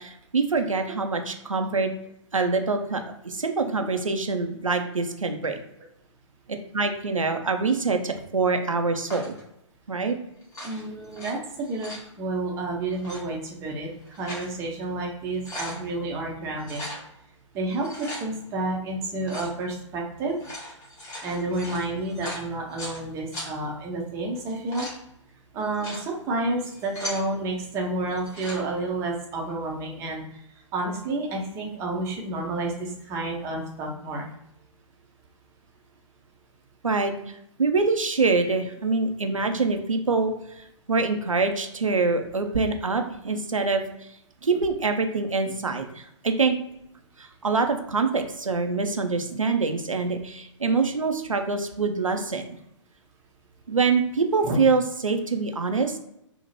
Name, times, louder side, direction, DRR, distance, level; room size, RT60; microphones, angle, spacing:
voice 1, 0.0-1.9 2.3-5.6 6.7-9.3 9.9-10.2 36.8-44.1 44.4-46.6 47.2-52.5 53.7-56.0, right 4 dB, 85° right, 5 dB, 0.4 m, -25 dB
sound 1, 9.1-9.4 10.4-11.3 11.6-12.1 12.9-13.2 13.9-14.5 14.9-15.0 15.3-15.8 16.6-17.0 17.7-18.2 19.2-19.6 20.3-23.0 23.3-23.5 24.4-25.0 25.6-26.0 26.6-27.2 28.1-28.6, left 1 dB, 20° left, 0.9 m, -38 dB
voice 2, 10.6-16.9 17.5-20.5 21.2-24.9 25.5-30.2 30.7-34.3 54.4-54.5, right 2 dB, 15° right, 0 dB, 0.5 m, -30 dB
2.6 x 2.0 x 3.1 m, 0.79 s
figure-of-eight pair, 120°, 16 cm